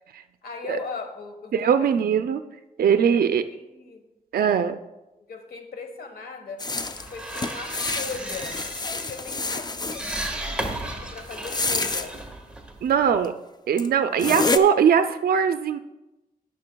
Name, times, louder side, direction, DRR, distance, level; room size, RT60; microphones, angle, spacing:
voice 1, 0.4-1.9 2.9-4.0 5.3-6.6 7.1-8.6 8.9-12.1, left 4 dB, 80° left, 5 dB, 1.3 m, -38 dB
voice 2, 1.5-2.4 2.8-3.4 4.3-4.8 12.8-13.3 13.7-15.8, right 7 dB, 80° right, 8 dB, 0.4 m, -21 dB
sound 1, 6.6-10.3 11.3-12.1 13.2-13.3 13.8-13.9 14.2-14.6, left 3 dB, 25° left, 0.5 m, -28 dB
sound 2, 6.8-13.3, right 1 dB, 5° right, 1.5 m, -35 dB
17.0 x 6.7 x 2.3 m, 0.98 s
cardioid pair, 70°, 15 cm